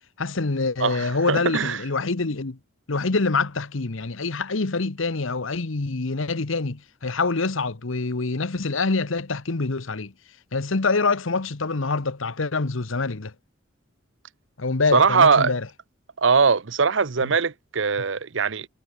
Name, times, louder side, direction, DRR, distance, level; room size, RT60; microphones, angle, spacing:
voice 1, 0.2-2.6 2.9-10.1 10.5-13.3 14.6-15.7 17.2-17.4, left 3 dB, 75° left, 1.1 m, -25 dB
voice 2, 0.8-1.8 14.9-15.5 16.2-18.7, right 5 dB, 65° right, 0.8 m, -21 dB
head